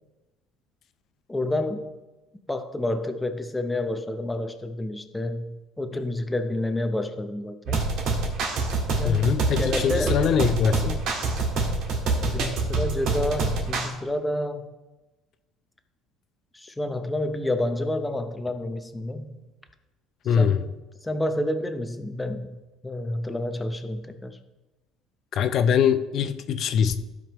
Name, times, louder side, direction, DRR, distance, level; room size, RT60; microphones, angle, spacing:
voice 1, 1.3-2.0 2.5-7.9 9.0-10.2 12.3-14.7 16.5-19.4 20.4-20.7 21.0-24.4, left 1 dB, 10° left, 7 dB, 0.7 m, -29 dB
sound 1, 7.7-13.9, right 3 dB, 60° right, 1.7 m, -26 dB
voice 2, 9.0-11.0 20.2-20.6 25.3-27.0, left 7 dB, 50° left, 11 dB, 0.6 m, -22 dB
15.0 x 5.2 x 3.0 m, 1.1 s
cardioid pair, 135°, 0 cm